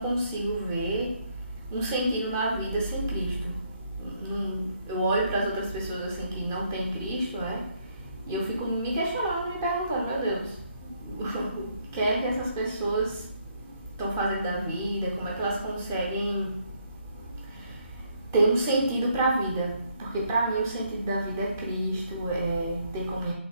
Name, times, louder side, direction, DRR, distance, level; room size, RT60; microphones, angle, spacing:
voice 1, 0.0-23.3, right 1 dB, 10° right, 0.5 m, -29 dB
3.3 x 2.7 x 4.4 m
figure-of-eight pair, 160°, 7 cm